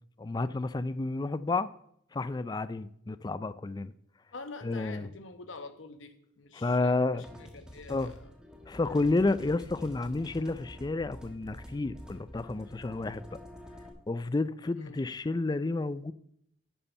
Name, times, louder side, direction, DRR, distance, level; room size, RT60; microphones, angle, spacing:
voice 1, 0.2-1.7 2.1-3.9 4.6-5.1 6.5-7.2 7.9-8.1 8.7-13.4 14.1-16.1, left 3 dB, 20° left, 0.3 m, -30 dB
voice 2, 4.3-8.3 14.8-15.0, left 3 dB, 75° left, 1.2 m, -46 dB
sound 1, 7.2-13.9, equal, 5° right, 1.2 m, -48 dB
11.0 x 6.9 x 5.6 m
head